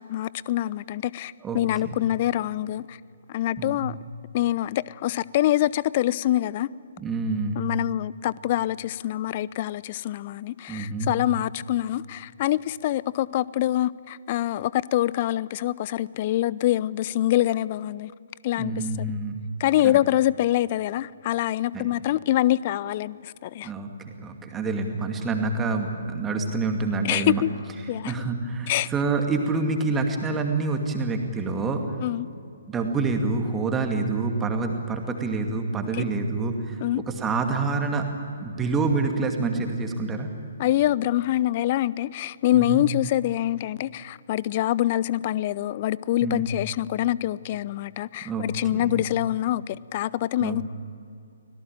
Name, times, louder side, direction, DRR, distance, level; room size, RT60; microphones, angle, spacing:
voice 1, 0.0-3.0 3.3-3.9 4.3-6.7 7.6-18.1 18.4-19.1 19.6-23.7 27.0-27.5 27.9-28.1 28.7-28.9 32.0-32.3 36.0-36.1 36.8-37.0 40.6-50.6, left 14 dB, 35° left, 0.5 m, -25 dB
voice 2, 1.4-2.0 3.6-3.9 7.0-7.6 10.7-11.1 18.6-19.4 19.8-19.9 21.7-21.9 23.6-27.4 28.0-31.8 32.7-38.1 38.4-40.3 42.5-42.8 46.2-46.5 48.2-48.5 48.7-49.0 50.4-50.6, right 3 dB, 10° right, 2.4 m, -27 dB
24.5 x 18.0 x 9.0 m
figure-of-eight pair, 130°, 0 cm